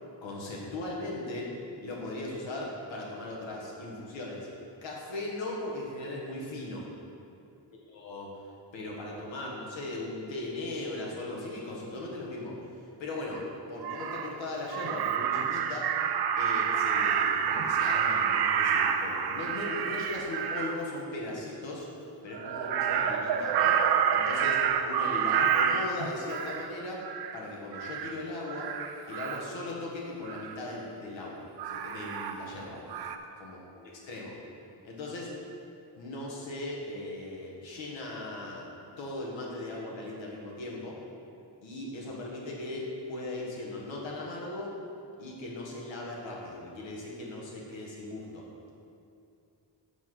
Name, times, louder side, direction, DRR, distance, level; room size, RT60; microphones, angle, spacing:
voice 1, 0.2-1.5 1.8-4.5 4.8-6.9 7.9-8.3 8.7-12.6 13.0-13.4 13.7-15.9 16.4-21.9 22.2-27.1 27.3-28.7 29.1-32.8 33.4-34.3 34.8-35.3 36.0-38.7 39.0-41.0 41.6-44.7 45.2-48.4, left 2 dB, 90° left, -3 dB, 1.7 m, -38 dB
Crow, 13.3-13.4 13.8-14.3 14.7-20.8 22.3-26.7 27.0-27.4 27.7-28.1 28.5-29.5 30.3-30.6 31.6-32.6 32.9-33.2, right 7 dB, 60° right, 0.5 m, -28 dB
6.0 x 5.7 x 6.1 m, 2.6 s
wide cardioid pair, 160°, 44 cm